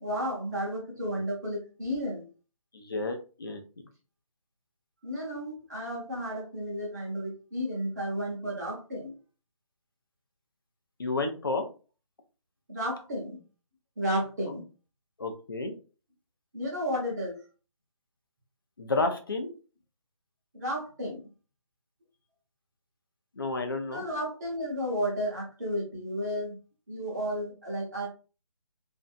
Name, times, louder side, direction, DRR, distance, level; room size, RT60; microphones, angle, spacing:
voice 1, 0.0-2.2 5.0-9.1 12.7-13.4 14.0-14.6 16.5-17.4 20.5-21.3 23.9-26.5 26.9-28.1, equal, 30° right, -2 dB, 1.0 m, -32 dB
voice 2, 2.7-3.6 11.0-11.6 15.2-15.7 18.8-19.5 23.4-24.0, left 3 dB, 40° left, 5 dB, 0.4 m, -31 dB
2.6 x 2.1 x 2.4 m, 0.34 s
figure-of-eight pair, 170°, 18 cm